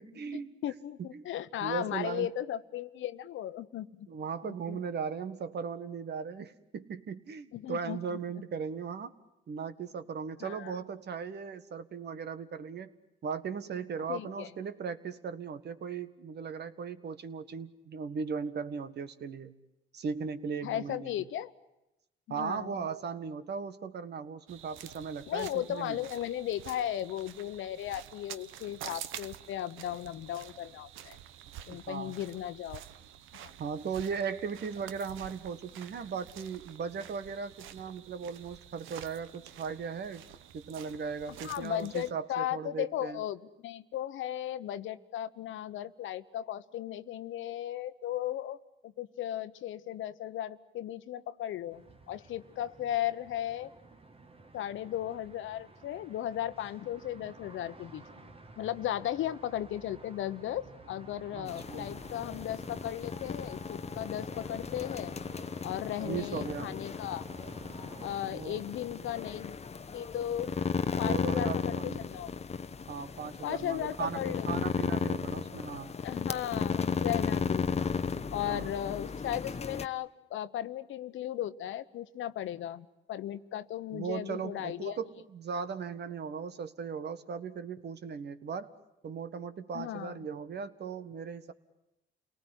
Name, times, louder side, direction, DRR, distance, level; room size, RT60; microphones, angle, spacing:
voice 1, 0.0-0.5 1.0-1.2 1.6-2.3 4.1-9.1 9.5-12.9 13.2-19.5 19.9-21.1 22.3-26.0 31.7-32.1 33.6-40.2 40.5-43.2 61.4-62.0 66.0-66.8 68.2-68.6 71.0-72.1 72.9-75.9 78.4-78.7 83.9-88.7 89.0-91.5, right 6 dB, 55° right, 12 dB, 1.7 m, -38 dB
voice 2, 0.6-4.1 4.4-4.8 7.5-8.0 10.4-10.7 14.1-14.5 20.6-21.5 22.3-22.7 25.3-31.2 31.7-32.8 33.4-33.5 41.4-48.6 48.8-53.7 54.5-65.1 65.6-67.2 68.0-69.6 69.9-70.5 71.0-72.3 73.4-74.6 76.0-77.7 78.3-85.0 89.7-90.2, left 12 dB, 80° left, 13 dB, 1.1 m, -36 dB
sound 1, 24.5-42.1, right 11 dB, 90° right, 1.0 m, -49 dB
sound 2, 51.7-68.2, right 3 dB, 30° right, 2.2 m, -52 dB
sound 3, 61.5-79.9, left 5 dB, 30° left, 1.0 m, -35 dB
29.0 x 19.0 x 10.0 m, 0.91 s
cardioid pair, 90°, 20 cm